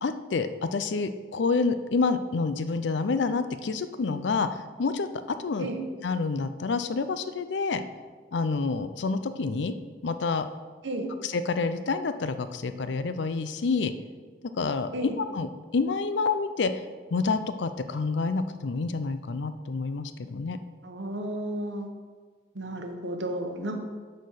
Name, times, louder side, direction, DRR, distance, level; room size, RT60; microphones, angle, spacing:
voice 1, 0.0-5.7 6.0-7.8 8.3-9.7 10.0-10.5 11.2-13.9 14.6-15.5 15.7-16.8 17.1-20.6, left 4 dB, 70° left, 11 dB, 0.5 m, -28 dB
voice 2, 20.8-21.9 22.5-23.9, right 1 dB, 70° right, 4 dB, 1.1 m, -33 dB
9.3 x 4.4 x 6.5 m, 1.5 s
head